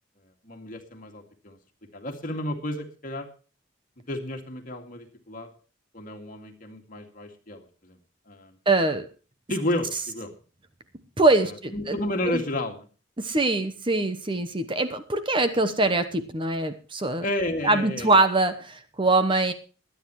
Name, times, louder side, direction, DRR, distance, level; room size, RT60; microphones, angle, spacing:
voice 1, 0.4-1.6 1.9-3.3 4.1-5.5 5.9-8.0 8.3-8.6 9.5-10.3 11.4-12.9 17.2-18.2, left 1 dB, 45° left, 4 dB, 2.2 m, -32 dB
voice 2, 8.7-9.1 11.2-12.0 12.3-12.4 13.2-17.2 17.6-19.5, right 2 dB, 25° right, 10 dB, 0.9 m, -23 dB
22.5 x 9.7 x 3.1 m, 0.35 s
head